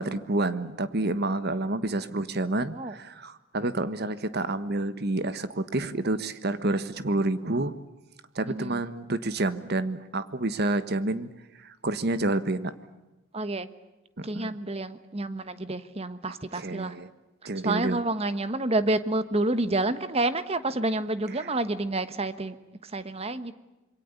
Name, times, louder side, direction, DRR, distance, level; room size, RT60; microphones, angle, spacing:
voice 1, 0.0-7.7 8.3-11.3 11.6-12.7 14.2-14.5 16.3-17.1 17.4-18.0 21.4-21.5, right 2 dB, 50° right, 12 dB, 1.4 m, -29 dB
voice 2, 8.5-8.8 13.3-13.7 14.2-17.0 17.6-22.6 22.8-23.5, right 2 dB, 30° right, 12 dB, 1.3 m, -29 dB
26.5 x 23.0 x 8.3 m, 1.0 s
head